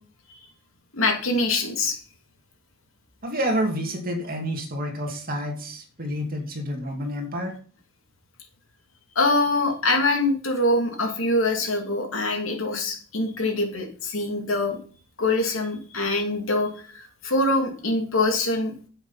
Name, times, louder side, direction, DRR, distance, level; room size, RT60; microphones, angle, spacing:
voice 1, 0.9-2.0 9.1-14.8 15.2-18.7, left 2 dB, 85° left, 3 dB, 2.7 m, -24 dB
voice 2, 3.2-7.5, equal, 45° right, 3 dB, 2.5 m, -29 dB
9.7 x 7.9 x 5.7 m, 0.43 s
head